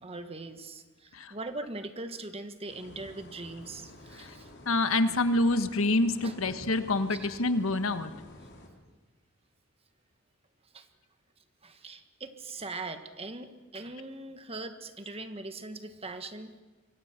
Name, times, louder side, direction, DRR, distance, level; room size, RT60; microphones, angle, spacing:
voice 1, 0.0-4.5 6.2-6.4 7.1-7.3 10.7-10.9 11.6-16.6, right 2 dB, 30° right, 8 dB, 1.4 m, -41 dB
sound 1, 2.7-8.7, left 1 dB, 55° left, 3.9 m, -50 dB
voice 2, 4.6-8.1, left 2 dB, 75° left, 9 dB, 1.4 m, -27 dB
26.0 x 23.5 x 5.9 m, 1.3 s
head